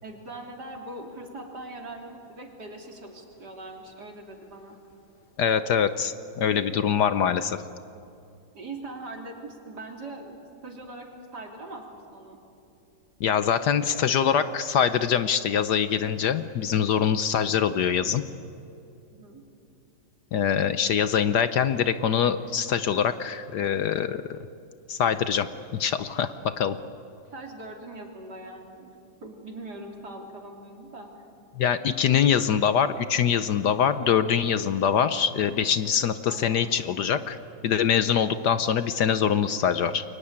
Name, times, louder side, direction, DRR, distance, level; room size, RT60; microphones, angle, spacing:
voice 1, 0.0-4.8 8.5-10.3 10.6-11.1 11.3-12.4 19.1-19.4 27.3-28.9 29.2-31.3 36.3-36.7, right 2 dB, 55° right, 1 dB, 3.7 m, -41 dB
voice 2, 5.4-7.6 13.2-18.2 20.3-24.4 24.9-25.5 25.7-26.8 31.6-37.4 37.6-40.0, left 8 dB, 65° left, 11 dB, 1.3 m, -24 dB
29.5 x 23.0 x 8.8 m, 2.7 s
omnidirectional pair, 2.1 m